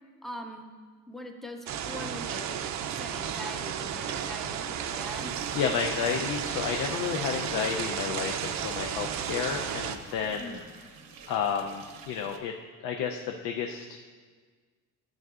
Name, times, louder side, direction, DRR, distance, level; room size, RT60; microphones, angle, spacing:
voice 1, 0.2-0.7 1.1-5.3 10.2-10.7, left 1 dB, ahead, 3 dB, 0.4 m, -42 dB
sound 1, 1.7-10.0, right 8 dB, 55° right, 0.5 m, -33 dB
sound 2, 5.0-12.4, right 5 dB, 75° right, 0.8 m, -50 dB
voice 2, 5.5-10.6 11.3-12.5 12.8-14.0, left 7 dB, 80° left, 3 dB, 0.6 m, -31 dB
12.0 x 7.5 x 2.4 m, 1.5 s
cardioid pair, 175°, 33 cm